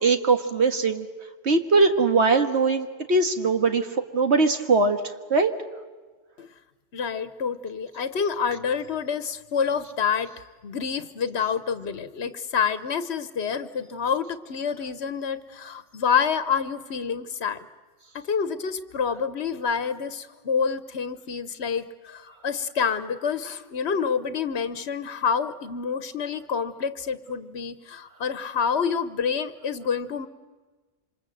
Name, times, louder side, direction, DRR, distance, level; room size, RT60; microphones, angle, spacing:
voice 1, 0.0-1.1 1.4-3.9 4.1-5.0 5.3-5.5, right 3 dB, 85° right, 7 dB, 2.0 m, -21 dB
voice 2, 6.9-10.3 10.6-17.7 18.1-30.3, left 6 dB, 75° left, 12 dB, 1.3 m, -28 dB
27.0 x 25.5 x 7.8 m, 1.3 s
omnidirectional pair, 1.1 m